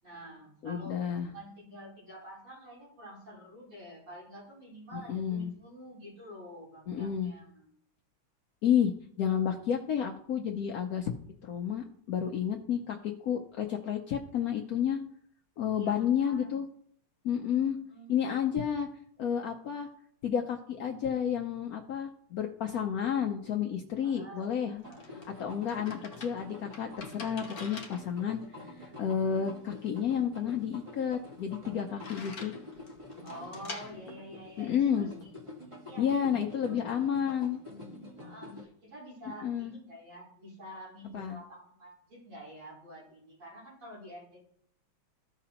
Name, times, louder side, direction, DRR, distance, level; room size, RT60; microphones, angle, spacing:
voice 1, 0.0-7.7 15.7-16.6 17.9-18.5 24.0-24.5 24.8-25.3 33.2-35.3 35.8-36.8 38.2-44.5, equal, 70° right, -7 dB, 5.1 m, -48 dB
voice 2, 0.6-1.3 4.9-5.5 6.9-7.3 8.6-8.9 9.2-11.1 11.4-15.0 15.6-16.7 17.2-17.8 18.1-18.9 19.2-19.9 20.2-24.8 25.4-28.4 28.8-32.5 34.6-35.1 36.0-37.6 39.4-39.7 41.1-41.4, left 8 dB, 75° left, 2 dB, 0.8 m, -31 dB
sound 1, 24.5-35.3, left 3 dB, 55° left, 1.2 m, -49 dB
sound 2, 24.8-38.6, left 1 dB, 15° right, 1.2 m, -48 dB
15.0 x 5.0 x 2.9 m, 0.65 s
omnidirectional pair, 2.4 m